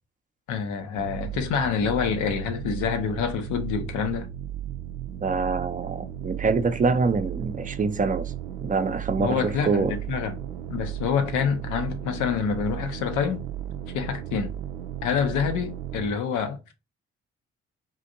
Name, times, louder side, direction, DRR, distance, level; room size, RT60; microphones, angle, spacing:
voice 1, 0.5-4.3 9.2-10.3 10.7-13.4 13.9-14.5 15.0-16.6, left 7 dB, 70° left, 0.7 m, -27 dB
sound 1, 1.0-16.1, right 11 dB, 80° right, 0.5 m, -35 dB
voice 2, 5.2-8.3 8.6-9.9, right 4 dB, 25° right, 0.6 m, -25 dB
3.7 x 2.5 x 2.6 m
hypercardioid pair, 40°, 32 cm